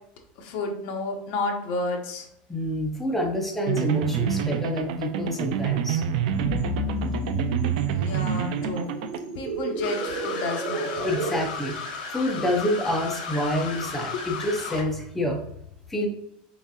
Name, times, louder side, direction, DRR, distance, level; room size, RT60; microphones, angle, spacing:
voice 1, 0.4-2.3 7.7-8.9 9.3-11.1 14.1-14.2, left 3 dB, 50° left, 2 dB, 0.9 m, -31 dB
voice 2, 2.5-6.0 11.0-11.8 12.1-15.4 15.9-16.1, left 1 dB, 5° left, 1 dB, 0.6 m, -27 dB
sound 1, 3.7-9.2, right 8 dB, 70° right, 0.4 m, -28 dB
sound 2, 6.3-11.4, right 2 dB, 40° right, 1.0 m, -31 dB
sound 3, 9.8-14.8, left 4 dB, 80° left, 0.9 m, -35 dB
4.1 x 3.6 x 2.3 m, 0.76 s
supercardioid pair, 160°, 5 cm